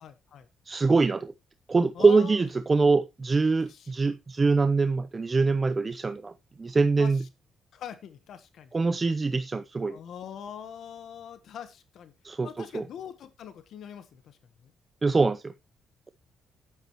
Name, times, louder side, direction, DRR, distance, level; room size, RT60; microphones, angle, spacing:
voice 1, 0.0-0.5 1.9-2.4 3.7-3.9 7.0-7.3 7.7-8.7 9.9-12.1 12.4-14.4, left 8 dB, 70° left, 11 dB, 1.2 m, -43 dB
voice 2, 0.7-1.3 1.7-6.3 6.6-7.2 8.7-10.0 12.2-12.5 12.7-12.8 15.0-15.5, right 4 dB, 30° right, 13 dB, 0.6 m, -23 dB
11.0 x 9.4 x 3.0 m, 0.24 s
cardioid pair, 90°, 0 cm